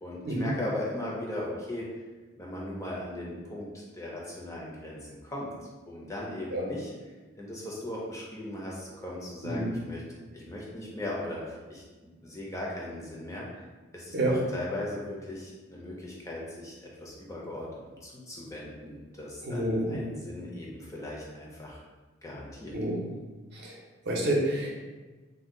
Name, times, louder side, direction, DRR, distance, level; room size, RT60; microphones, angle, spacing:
voice 1, 0.0-2.0 2.4-5.5 5.9-6.9 7.4-10.0 10.3-11.8 12.2-13.7 13.9-21.8 22.2-22.7, left 1 dB, 15° left, -4 dB, 0.4 m, -38 dB
voice 2, 9.4-9.7 14.1-14.4 19.4-20.0 22.7-23.0 23.5-23.8 24.1-24.7, right 1 dB, 55° right, -2 dB, 0.6 m, -28 dB
2.5 x 2.2 x 3.6 m, 1.3 s
head